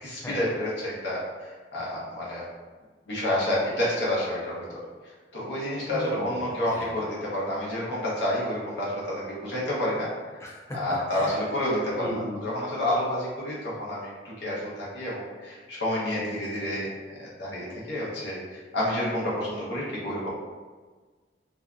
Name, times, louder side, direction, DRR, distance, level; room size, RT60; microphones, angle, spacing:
voice 1, 0.0-2.4 3.1-4.8 5.0-10.4 10.7-20.3, left 1 dB, 70° left, -6 dB, 0.9 m, -29 dB
voice 2, 5.8-6.9 10.4-11.4 12.0-12.4, left 1 dB, 15° left, -3 dB, 0.4 m, -36 dB
2.6 x 2.4 x 2.3 m, 1.4 s
head